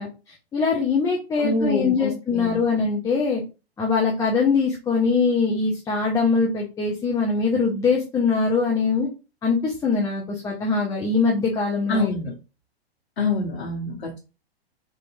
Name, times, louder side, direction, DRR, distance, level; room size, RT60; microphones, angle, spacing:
voice 1, 0.0-3.4 3.8-9.1 9.4-12.1, left 4 dB, 10° left, -2 dB, 0.4 m, -22 dB
voice 2, 1.4-2.6 11.9-12.3 13.2-14.2, left 2 dB, 75° left, -2 dB, 0.9 m, -26 dB
3.3 x 2.7 x 2.6 m, 0.31 s
hypercardioid pair, 110°, 32 cm